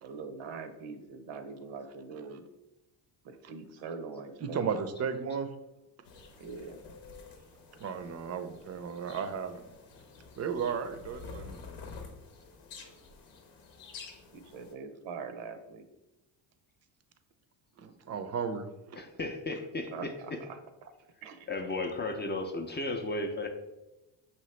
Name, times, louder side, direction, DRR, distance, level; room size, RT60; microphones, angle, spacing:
voice 1, 0.0-2.4 3.2-4.7 6.4-6.8 14.3-15.9 19.7-20.6 21.2-21.8, right 5 dB, 85° right, 8 dB, 0.7 m, -43 dB
voice 2, 4.4-5.5 7.8-9.6 10.4-11.6 17.8-19.0, right 6 dB, 35° right, 9 dB, 0.5 m, -34 dB
sound 1, 6.0-14.7, left 5 dB, 75° left, 0.9 m, -49 dB
voice 3, 18.9-20.4 21.5-23.5, left 2 dB, 25° left, 4 dB, 0.5 m, -34 dB
5.5 x 2.9 x 3.2 m, 0.98 s
cardioid pair, 85°, 46 cm